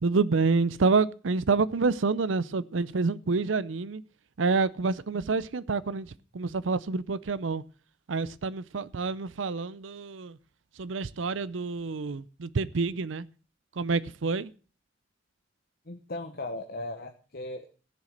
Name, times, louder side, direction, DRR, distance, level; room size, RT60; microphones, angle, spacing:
voice 1, 0.0-4.0 4.4-6.1 6.3-7.6 8.1-10.3 10.8-13.3 13.8-14.5, right 4 dB, 90° right, 0.6 m, -27 dB
voice 2, 15.9-17.7, left 2 dB, 55° left, 1.2 m, -37 dB
16.0 x 7.3 x 6.5 m
head